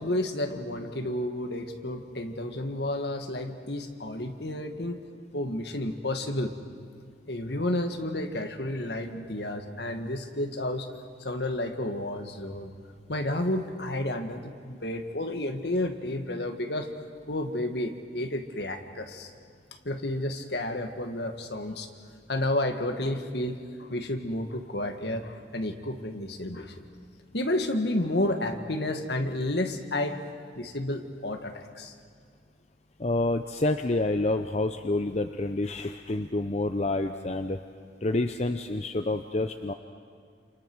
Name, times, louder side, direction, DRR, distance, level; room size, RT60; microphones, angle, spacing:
voice 1, 0.0-5.0 5.3-6.5 7.3-10.9 11.2-12.7 13.1-16.9 17.3-19.3 19.9-21.9 22.3-26.7 27.3-30.2 30.6-31.9, left 1 dB, 60° left, 6 dB, 1.8 m, -31 dB
voice 2, 33.0-37.6 38.0-39.7, left 2 dB, 35° left, 7 dB, 0.7 m, -28 dB
28.5 x 27.5 x 6.2 m, 2.1 s
head